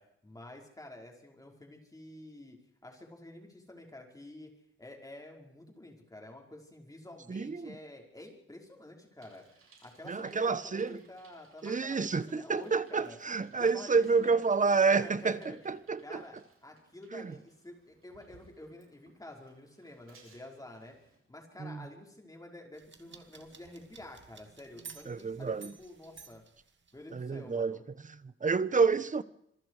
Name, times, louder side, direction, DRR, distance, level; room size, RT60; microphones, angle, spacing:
voice 1, 0.0-2.6 2.8-4.5 4.8-13.2 13.5-14.4 14.7-15.7 16.0-16.4 16.6-21.0 21.3-26.4 26.9-27.8, left 1 dB, 15° left, 5.4 m, -49 dB
voice 2, 7.3-7.7 10.1-11.0 11.6-15.4 15.6-16.2 17.1-17.3 21.6-21.9 25.1-25.7 27.1-27.8 28.1-29.2, right 4 dB, 35° right, 1.1 m, -29 dB
Bicycle, 9.2-21.2, right 4 dB, 85° right, 7.5 m, -64 dB
sound 1, 22.7-27.3, right 5 dB, 60° right, 2.3 m, -53 dB
26.5 x 23.0 x 5.0 m
wide cardioid pair, 115°, 21 cm